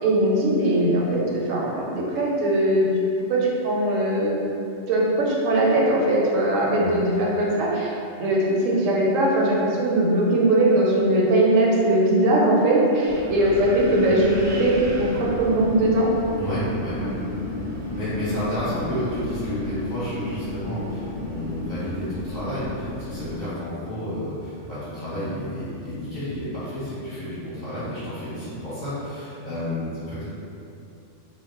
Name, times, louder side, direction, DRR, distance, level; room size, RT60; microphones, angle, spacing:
voice 1, 0.0-2.9 3.3-4.4 4.9-7.9 8.2-16.1, right 1 dB, 85° right, -4 dB, 1.0 m, -20 dB
Wind, 13.1-23.3, left 1 dB, 15° right, 0.4 m, -32 dB
voice 2, 16.3-17.1 17.9-30.2, equal, 45° left, -12 dB, 0.8 m, -31 dB
2.3 x 2.0 x 3.6 m, 2.7 s
omnidirectional pair, 1.3 m